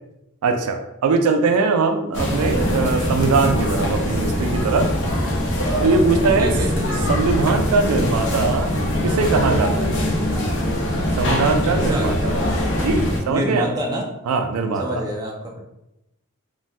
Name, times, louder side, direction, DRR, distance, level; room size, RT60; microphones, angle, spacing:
voice 1, 0.4-4.9 5.8-6.5 7.1-8.7 9.0-9.9 11.2-12.4 12.7-13.7 14.3-15.0, right 4 dB, 80° right, 6 dB, 0.3 m, -21 dB
sound 1, 2.1-13.2, left 1 dB, 55° left, 0.6 m, -22 dB
voice 2, 6.4-7.1 11.9-12.1 13.2-14.1 14.8-15.6, equal, 15° right, -2 dB, 0.4 m, -27 dB
3.2 x 2.2 x 2.6 m, 0.89 s
head